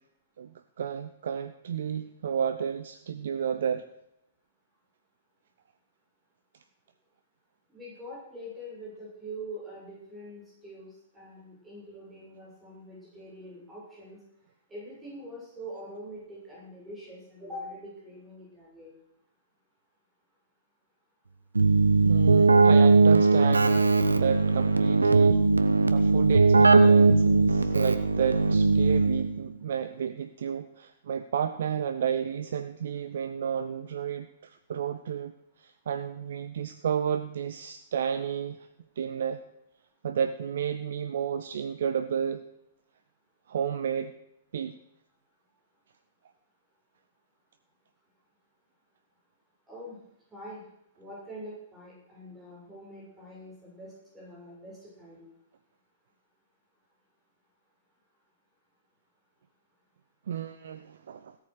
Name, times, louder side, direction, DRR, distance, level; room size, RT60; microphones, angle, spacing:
voice 1, 0.4-3.8 22.0-25.4 25.9-35.3 35.6-38.7 39.0-39.4 40.0-42.4 43.5-44.1 44.5-44.8 60.3-61.4, right 8 dB, 55° right, 10 dB, 0.7 m, -31 dB
voice 2, 7.7-14.2 14.7-18.9 49.7-50.0 50.3-50.6 51.0-55.3, equal, 10° right, -6 dB, 7.1 m, -44 dB
Keyboard (musical), 21.6-29.4, right 3 dB, 80° right, 1.1 m, -20 dB
17.0 x 8.7 x 6.6 m, 0.84 s
figure-of-eight pair, 110°, 0 cm